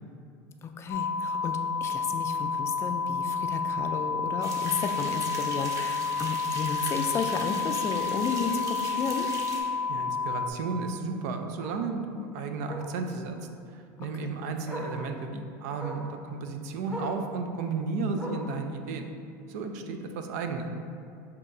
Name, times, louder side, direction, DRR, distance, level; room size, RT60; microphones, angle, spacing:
voice 1, 0.6-9.3 14.0-14.3, left 5 dB, 30° left, 6 dB, 0.3 m, -33 dB
sound 1, 0.9-10.5, left 5 dB, 85° left, 0.5 m, -30 dB
sound 2, 4.4-9.6, right 2 dB, 35° right, 0.8 m, -40 dB
Bark, 5.1-5.3 5.7-5.8 6.2-6.3 6.6-6.7 8.1-8.2 10.7-10.8 11.6-11.9 12.6-12.9 14.1-14.2 14.6-15.0 15.7-16.1 16.8-17.2 18.1-18.6 19.6-19.7, right 1 dB, 15° right, 1.1 m, -39 dB
voice 2, 9.9-13.4 13.7-19.1 19.5-20.7, right 4 dB, 75° right, 6 dB, 0.4 m, -33 dB
7.2 x 2.8 x 2.6 m, 2.4 s
supercardioid pair, 115°, 9 cm